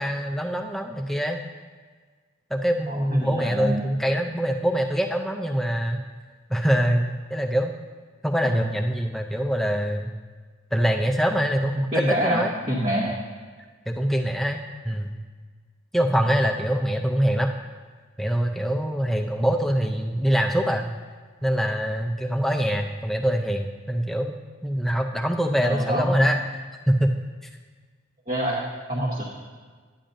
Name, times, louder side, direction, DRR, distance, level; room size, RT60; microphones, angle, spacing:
voice 1, 0.0-1.4 2.5-6.1 6.5-7.7 8.2-10.1 10.7-12.5 13.9-15.1 15.9-17.5 18.2-20.9 21.4-24.4 24.6-26.6 26.9-27.2, equal, ahead, 3 dB, 0.4 m, -24 dB
voice 2, 2.9-3.8 8.4-8.7 11.8-13.1 25.6-26.3 28.3-28.6 28.9-29.2, equal, 35° right, -5 dB, 1.0 m, -26 dB
10.0 x 10.0 x 2.6 m, 1.5 s
head